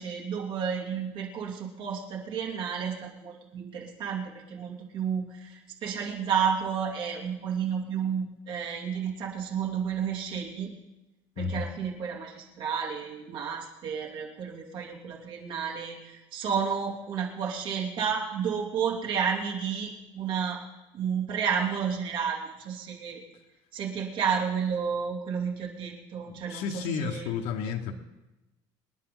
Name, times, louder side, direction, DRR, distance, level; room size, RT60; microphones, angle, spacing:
voice 1, 0.0-10.7 11.4-20.6 20.9-23.2 23.7-27.2, right 7 dB, 50° right, -2 dB, 3.2 m, -31 dB
voice 2, 26.3-27.9, left 6 dB, 70° left, 4 dB, 1.3 m, -32 dB
26.5 x 10.0 x 3.9 m, 1.0 s
cardioid pair, 170°, 11 cm